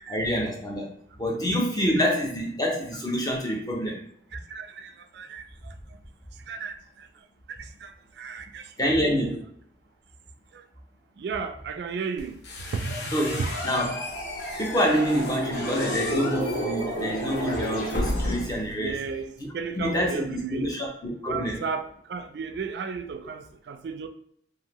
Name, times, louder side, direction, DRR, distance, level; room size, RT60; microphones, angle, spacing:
voice 1, 0.1-4.1 8.8-9.4 13.1-14.1 14.6-18.9 19.8-21.6, equal, 20° left, 0.6 m, -27 dB
voice 2, 4.3-5.7 6.5-9.0 10.5-10.6 11.2-13.0 13.4-13.5 18.8-20.8 21.3-24.1, right 5 dB, 65° right, 0.3 m, -35 dB
sound 1, 12.2-18.7, left 1 dB, 70° left, 0.7 m, -34 dB
sound 2, 12.7-18.5, right 1 dB, 90° left, 1.4 m, -33 dB
2.7 x 2.6 x 2.9 m
head